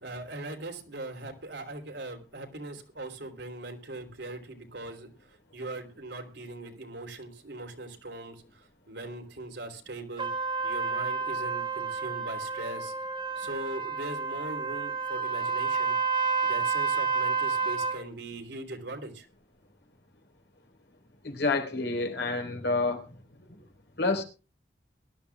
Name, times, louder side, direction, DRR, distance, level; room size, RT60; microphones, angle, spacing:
voice 1, 0.0-5.1 5.5-10.3 10.6-12.9 13.4-15.9 16.4-19.3, right 2 dB, 80° right, 4 dB, 3.2 m, -40 dB
Trumpet, 10.2-18.0, right 5 dB, 30° right, 2.1 m, -30 dB
voice 2, 21.2-23.1 24.0-24.2, left 3 dB, 75° left, 5 dB, 4.0 m, -28 dB
22.5 x 12.5 x 2.3 m, 0.32 s
head